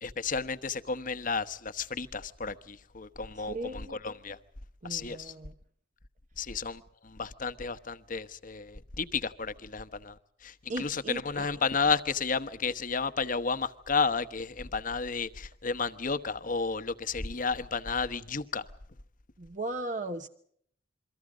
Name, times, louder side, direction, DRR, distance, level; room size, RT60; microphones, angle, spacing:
voice 1, 0.0-4.4 4.8-5.3 6.4-10.1 10.4-18.6, left 5 dB, 45° left, 1.1 m, -32 dB
voice 2, 3.4-4.0 4.8-5.6 10.7-11.5 19.4-20.3, right 2 dB, 45° right, 1.1 m, -37 dB
28.5 x 23.5 x 5.0 m
head